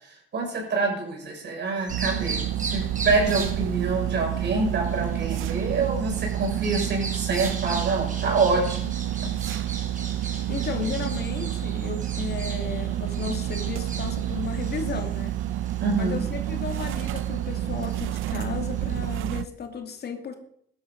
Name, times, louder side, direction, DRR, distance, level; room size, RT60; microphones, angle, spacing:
voice 1, 0.0-8.9 9.2-9.3 15.8-16.2, right 3 dB, 60° right, 1 dB, 6.6 m, -26 dB
Bird vocalization bird call bird song, 1.8-19.1, right 3 dB, 40° right, 4.6 m, -40 dB
sound 1, 1.9-19.5, right 12 dB, 90° right, 0.6 m, -29 dB
voice 2, 10.5-15.4 16.0-20.3, left 6 dB, 55° left, 5 dB, 2.7 m, -34 dB
16.0 x 12.0 x 5.3 m, 0.68 s
cardioid pair, 90°, 20 cm